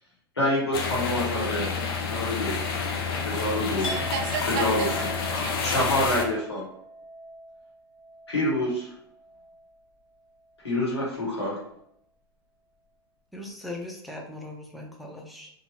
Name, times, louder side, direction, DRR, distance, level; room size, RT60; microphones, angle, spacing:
voice 1, 0.4-1.7 2.0-2.6 3.2-3.9 4.5-4.9 5.6-6.7 8.3-8.9 10.6-11.6, left 1 dB, 90° left, -4 dB, 1.2 m, -27 dB
sound 1, 0.7-6.2, left 5 dB, 65° left, 0.6 m, -29 dB
Chink clink, 3.8-9.8 10.1-10.5, equal, 30° left, 1.3 m, -42 dB
voice 2, 3.8-5.8, right 5 dB, 55° right, 4 dB, 0.5 m, -34 dB
voice 3, 13.3-15.5, left 2 dB, ahead, 0 dB, 0.5 m, -39 dB
2.7 x 2.4 x 2.8 m, 0.74 s
hypercardioid pair, 95°, 13 cm